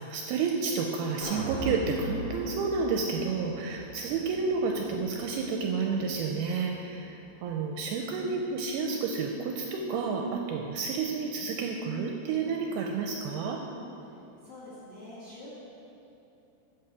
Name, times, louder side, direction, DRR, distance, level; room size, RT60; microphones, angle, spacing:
voice 1, 0.0-13.6, right 4 dB, 80° right, 2 dB, 2.3 m, -30 dB
sound 1, 1.2-7.4 7.8-7.9, right 1 dB, 80° left, 0.7 m, -41 dB
voice 2, 14.4-15.5, left 1 dB, 45° left, -9 dB, 1.9 m, -47 dB
10.5 x 7.7 x 4.8 m, 2.9 s
omnidirectional pair, 4.9 m